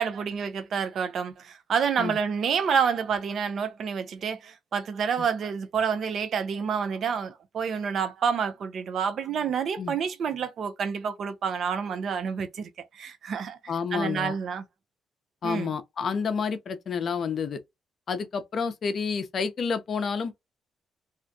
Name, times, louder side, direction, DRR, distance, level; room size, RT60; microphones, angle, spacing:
voice 1, 0.0-12.7 12.9-13.6 13.9-14.6 15.4-15.7, right 6 dB, 60° right, 0.5 m, -28 dB
voice 2, 13.7-14.3 15.4-17.6 18.1-20.3, left 5 dB, 55° left, 0.5 m, -29 dB
2.4 x 2.1 x 2.6 m
cardioid pair, 90°, 0 cm